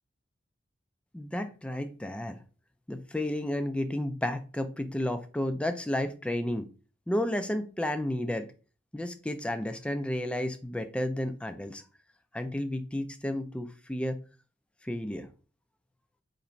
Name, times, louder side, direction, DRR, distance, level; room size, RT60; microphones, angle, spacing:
voice 1, 1.1-2.4 2.9-6.7 7.1-8.5 8.9-11.8 12.3-14.2 14.8-15.3, left 1 dB, 5° left, 8 dB, 0.3 m, -32 dB
2.9 x 2.6 x 4.3 m, 0.36 s
head